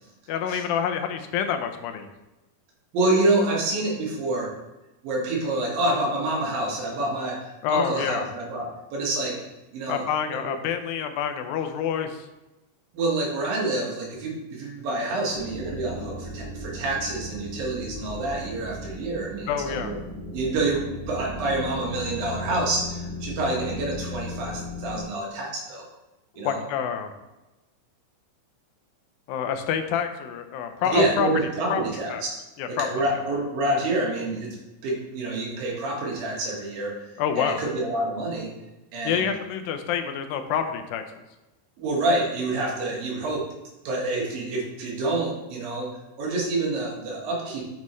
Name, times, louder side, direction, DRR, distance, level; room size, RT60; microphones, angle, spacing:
voice 1, 0.3-2.1 7.6-8.3 9.9-12.3 19.5-20.0 26.4-27.1 29.3-31.3 31.7-31.8 32.1-32.2 32.6-32.9 37.2-37.6 39.1-41.0, left 8 dB, 85° left, 7 dB, 2.4 m, -27 dB
voice 2, 2.9-4.5 5.0-9.4 9.7-10.0 10.3-10.5 12.9-20.0 20.3-25.9 26.4-26.6 30.8-32.4 32.7-34.6 34.8-37.1 37.4-38.5 38.9-39.3 41.8-43.4 43.8-45.9 46.2-47.6, right 2 dB, 75° right, -2 dB, 3.2 m, -27 dB
sound 1, 15.3-25.0, left 1 dB, 30° left, 0.7 m, -36 dB
7.3 x 6.5 x 3.1 m, 1.0 s
omnidirectional pair, 4.1 m